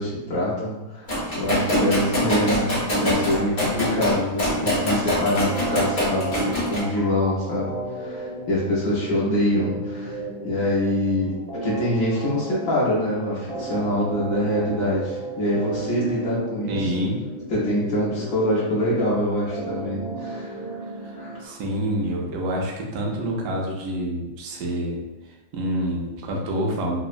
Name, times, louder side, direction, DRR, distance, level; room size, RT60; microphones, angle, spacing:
voice 1, 0.0-11.3 11.6-16.9 17.5-20.7 21.1-21.6, left 1 dB, 65° left, -7 dB, 0.8 m, -25 dB
sound 1, 1.1-6.8, left 1 dB, 25° left, 0.7 m, -24 dB
sound 2, 5.5-21.5, right 2 dB, 55° right, 1.1 m, -34 dB
voice 2, 16.7-17.3 21.0-25.0 25.5-27.0, equal, 75° right, -1 dB, 0.9 m, -27 dB
3.5 x 2.0 x 2.4 m, 1.0 s
omnidirectional pair, 2.3 m